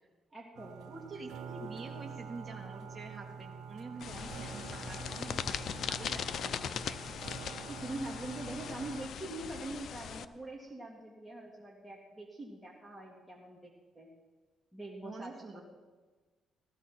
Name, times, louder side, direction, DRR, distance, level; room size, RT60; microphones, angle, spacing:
voice 1, 0.3-0.9 7.7-14.1 14.7-15.6, right 2 dB, 10° right, -2 dB, 2.3 m, -44 dB
sound 1, 0.5-9.1, right 7 dB, 85° right, 0.7 m, -46 dB
voice 2, 0.9-7.1 15.0-15.6, right 3 dB, 30° right, -1 dB, 3.1 m, -47 dB
sound 2, 4.0-10.2, left 8 dB, 65° left, 0.6 m, -40 dB
15.5 x 14.0 x 4.4 m, 1.3 s
cardioid pair, 90°, 0 cm